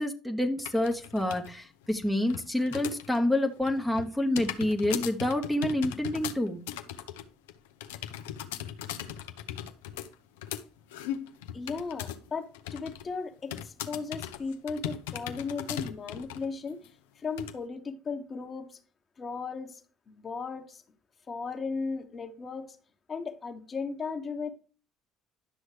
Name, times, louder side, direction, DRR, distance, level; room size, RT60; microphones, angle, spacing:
voice 1, 0.0-6.6, left 1 dB, ahead, 0.9 m, -28 dB
sound 1, 0.6-1.5 1.8-3.2 3.5-12.3 12.5-13.1 13.5-16.5 16.8-16.9 17.4-17.5, left 11 dB, 85° left, 0.6 m, -38 dB
voice 2, 11.5-16.8 17.2-18.8 19.2-19.8 20.1-20.8 21.3-22.8 23.1-24.5, left 4 dB, 40° left, 1.1 m, -36 dB
11.0 x 6.2 x 3.2 m
hypercardioid pair, 70°, 0 cm